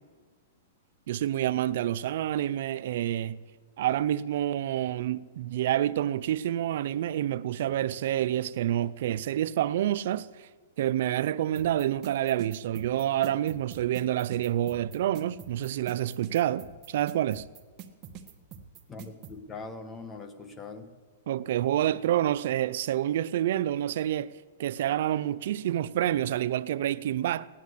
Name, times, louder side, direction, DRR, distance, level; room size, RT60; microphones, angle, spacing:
voice 1, 1.1-3.4 3.8-10.5 10.8-17.4 21.3-24.3 24.6-27.5, right 12 dB, 65° right, 0.5 m, -28 dB
sound 1, 11.6-19.4, right 8 dB, 35° right, 1.4 m, -45 dB
voice 2, 18.9-20.9, left 3 dB, 15° left, 1.5 m, -42 dB
17.5 x 10.5 x 8.2 m
hypercardioid pair, 145°, 0 cm